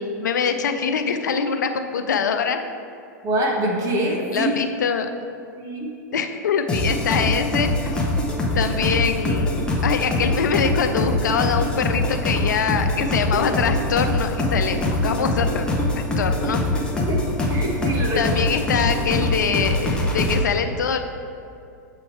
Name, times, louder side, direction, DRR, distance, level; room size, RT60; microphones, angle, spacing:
voice 1, 0.0-2.6 4.3-5.1 6.1-8.0 8.5-15.7 16.0-16.6 18.2-21.0, left 6 dB, 80° left, 7 dB, 0.5 m, -24 dB
voice 2, 3.2-4.5 5.5-5.9 17.0-18.3, right 1 dB, 35° right, 0 dB, 1.2 m, -25 dB
sound 1, 6.7-20.4, left 1 dB, 10° left, 0.9 m, -23 dB
7.1 x 3.2 x 4.3 m, 2.5 s
hypercardioid pair, 105°, 10 cm